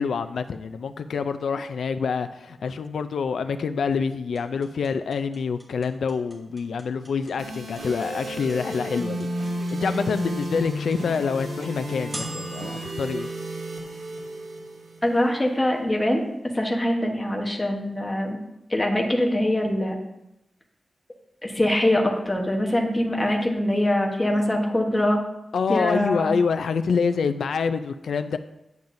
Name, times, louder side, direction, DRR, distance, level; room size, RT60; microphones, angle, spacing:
voice 1, 0.0-9.3 9.7-13.3 24.3-24.5 25.5-28.4, left 5 dB, 85° left, 10 dB, 0.3 m, -26 dB
sound 1, 4.4-14.5, right 1 dB, 15° right, 1.7 m, -41 dB
sound 2, 7.4-15.4, equal, 85° right, 2.3 m, -32 dB
voice 2, 15.0-16.2 16.5-18.4 18.7-20.0 21.4-25.2 25.7-26.3, left 1 dB, 15° left, 1 dB, 1.0 m, -23 dB
9.2 x 7.0 x 2.6 m, 0.87 s
wide cardioid pair, 170°, 0 cm